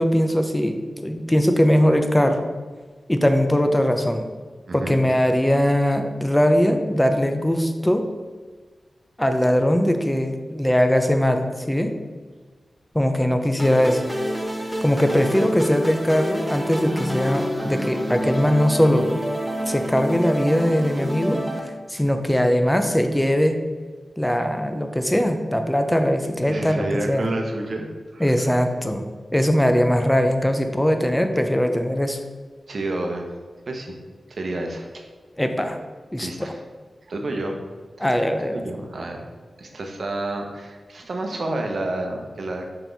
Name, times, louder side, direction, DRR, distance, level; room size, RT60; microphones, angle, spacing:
voice 1, 0.0-2.4 3.1-4.3 4.7-8.0 9.2-11.9 12.9-14.1 14.8-19.1 19.7-21.4 21.9-23.6 24.2-27.3 28.2-29.0 29.3-32.2 35.4-35.8 36.1-36.5 38.0-38.6, equal, 10° left, 6 dB, 0.6 m, -20 dB
voice 2, 4.7-5.0 18.4-18.5 26.5-27.9 28.1-28.6 32.7-33.3 33.7-34.0 34.3-35.0 36.2-36.6 37.1-37.6 38.0-38.2 38.5-39.3 39.6-42.7, right 2 dB, 60° right, 3 dB, 0.9 m, -30 dB
sound 1, 13.6-21.6, equal, 5° right, 1.0 m, -28 dB
6.1 x 4.5 x 4.0 m, 1.4 s
wide cardioid pair, 80°, 0 cm